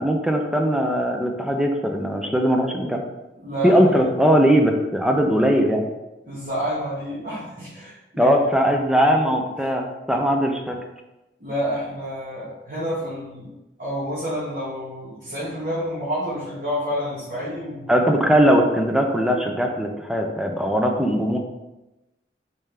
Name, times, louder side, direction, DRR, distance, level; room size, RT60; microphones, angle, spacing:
voice 1, 0.0-3.0 3.6-5.9 8.2-10.8 17.9-21.4, equal, 5° right, 2 dB, 0.4 m, -20 dB
voice 2, 3.4-4.0 6.2-8.3 8.6-8.7 11.4-13.5 13.8-17.9, equal, 45° right, -10 dB, 1.3 m, -29 dB
4.3 x 3.6 x 3.3 m, 1.0 s
head